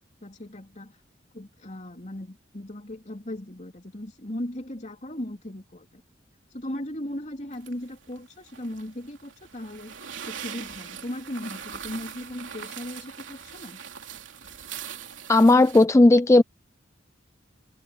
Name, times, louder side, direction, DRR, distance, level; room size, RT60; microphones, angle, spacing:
voice 1, 0.2-1.0 1.3-6.0 6.5-9.9 10.3-13.8, left 1 dB, 40° left, 3.5 m, -37 dB
sound 1, 7.5-15.8, right 8 dB, 85° right, 3.2 m, -41 dB
voice 2, 15.3-16.4, left 2 dB, 15° left, 0.3 m, -15 dB
head